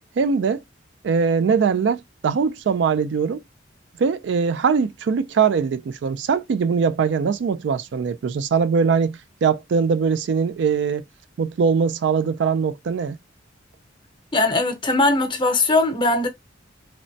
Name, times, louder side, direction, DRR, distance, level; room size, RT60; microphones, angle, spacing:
voice 1, 0.2-0.6 1.0-3.4 4.0-11.0 11.4-13.2, right 6 dB, 65° right, 0.3 m, -21 dB
voice 2, 14.3-16.3, left 2 dB, 25° left, 0.7 m, -20 dB
3.0 x 2.1 x 2.6 m
head